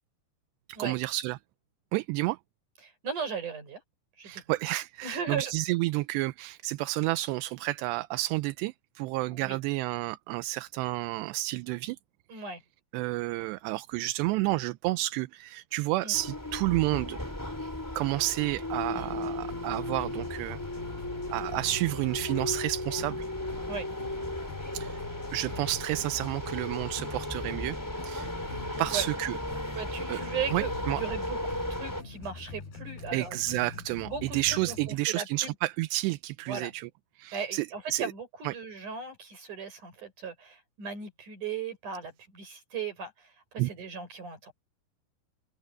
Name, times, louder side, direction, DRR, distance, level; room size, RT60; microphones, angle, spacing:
voice 1, 0.8-1.4 1.9-2.4 4.2-12.0 12.3-12.4 12.9-17.2 18.0-20.6 21.3-23.3 24.7-25.0 25.3-27.8 28.0-28.3 28.8-29.4 30.1-30.2 30.5-31.0 33.1-36.9 37.2-38.1 38.4-38.5 43.6-43.7, right 18 dB, 80° right, 2.7 m, -30 dB
voice 2, 2.8-3.8 4.2-4.4 5.0-5.5 9.3-9.6 12.3-12.6 16.0-16.1 18.9-19.1 23.7-23.9 28.3-28.5 28.9-29.0 29.7-33.4 33.8-34.2 34.7-35.5 36.5-36.7 37.3-44.5, right 6 dB, 45° right, 7.9 m, -37 dB
sound 1, 16.1-32.0, left 1 dB, 5° left, 3.1 m, -36 dB
sound 2, 19.0-35.0, left 4 dB, 60° left, 8.4 m, -44 dB
omnidirectional pair, 5.1 m